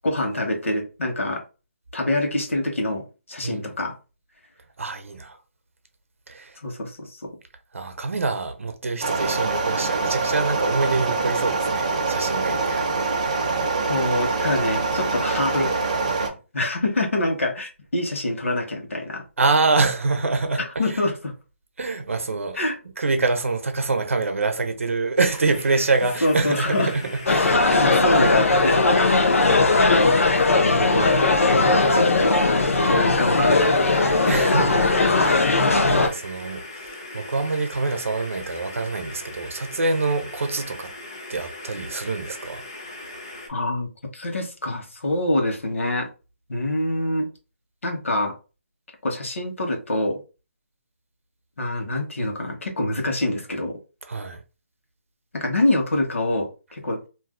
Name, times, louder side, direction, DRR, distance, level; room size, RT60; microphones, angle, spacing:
voice 1, 0.0-1.4 1.9-3.9 6.6-7.3 13.9-15.7 16.5-19.2 20.8-21.3 22.5-22.7 26.2-26.9 27.7-28.8 29.5-29.6 30.7-31.2 31.5-32.4 32.9-34.1 43.5-43.9 44.1-46.1 46.5-47.3 47.8-48.3 49.0-50.2 51.6-53.8 55.3-57.1, left 1 dB, 75° left, 1.1 m, -25 dB
voice 2, 4.8-5.4 6.3-6.6 7.7-13.4 19.4-21.0 21.8-22.6 23.0-27.7 30.3-31.2 34.3-35.6 35.8-40.9 41.3-42.6 54.1-54.4, right 3 dB, 75° right, 0.6 m, -26 dB
sound 1, 9.0-16.3, right 3 dB, 30° right, 0.5 m, -24 dB
sound 2, 25.2-43.5, left 2 dB, 20° left, 0.4 m, -40 dB
sound 3, 27.3-36.1, left 3 dB, 90° left, 0.6 m, -18 dB
2.6 x 2.1 x 3.6 m
hypercardioid pair, 180°, 7 cm